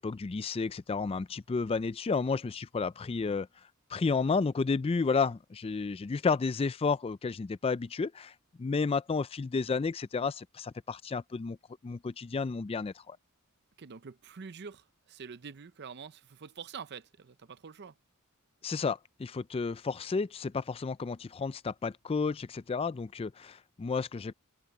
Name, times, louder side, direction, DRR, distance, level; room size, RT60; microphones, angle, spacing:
voice 1, 0.0-3.5 3.9-11.6 11.8-13.2 18.6-24.3, left 4 dB, 25° left, 0.3 m, -31 dB
voice 2, 13.8-17.9, right 6 dB, 50° right, 0.6 m, -46 dB
head